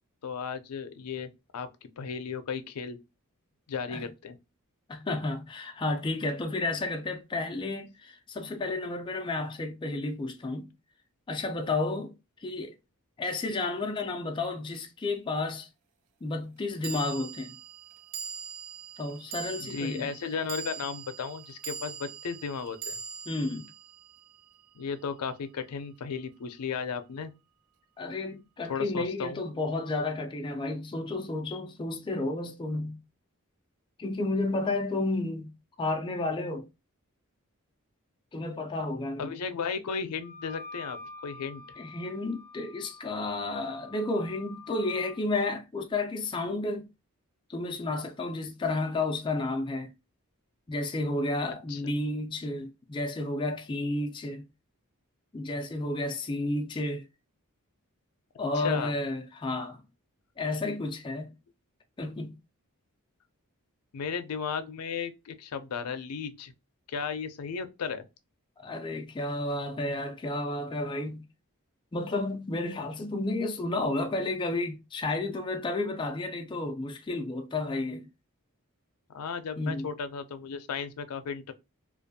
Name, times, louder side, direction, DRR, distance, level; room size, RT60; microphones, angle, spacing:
voice 1, 0.2-3.0 3.7-4.4 19.6-22.9 24.7-27.3 28.7-29.4 39.2-41.0 41.2-41.6 51.7-51.8 58.5-58.9 63.9-66.5 66.9-68.0 79.1-81.5, left 6 dB, 90° left, 0.4 m, -35 dB
voice 2, 4.9-10.7 11.3-12.1 12.4-12.7 13.2-15.7 16.2-17.6 19.0-20.1 23.3-23.7 28.0-33.0 34.0-36.7 38.3-39.3 41.8-46.9 47.5-49.9 50.7-54.5 55.3-57.1 58.4-59.8 60.4-61.3 62.0-62.4 68.6-71.2 71.9-78.1 79.6-79.9, left 2 dB, 20° left, 0.3 m, -32 dB
sound 1, 14.7-14.8 16.8-25.3, right 6 dB, 70° right, 0.4 m, -42 dB
Wind instrument woodwind instrument, 40.2-45.2, left 3 dB, 20° right, 0.8 m, -47 dB
2.5 x 2.2 x 2.6 m
head